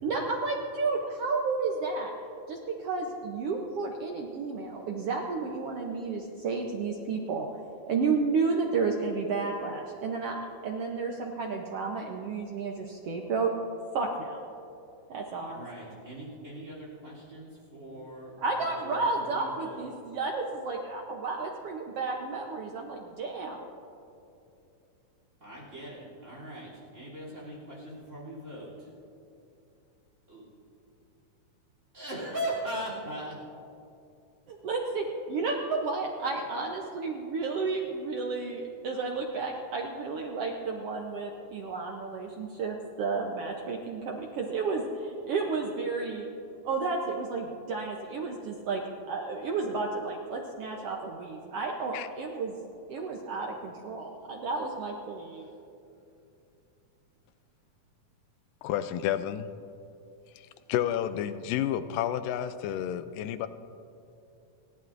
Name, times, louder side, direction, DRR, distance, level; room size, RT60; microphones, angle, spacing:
voice 1, 0.0-2.1 2.5-7.5 7.9-13.5 13.9-14.4 15.1-15.7 18.4-23.6 34.5-46.3 46.6-48.8 49.1-52.5 52.9-55.5, right 4 dB, 75° right, 0 dB, 1.4 m, -32 dB
voice 2, 15.4-19.8 25.4-28.9 30.3-30.4 31.9-33.4, right 1 dB, 20° right, -3 dB, 3.2 m, -39 dB
voice 3, 58.6-59.5 60.7-63.5, left 10 dB, 90° left, 12 dB, 2.2 m, -30 dB
30.0 x 11.0 x 2.6 m, 2.7 s
omnidirectional pair, 3.8 m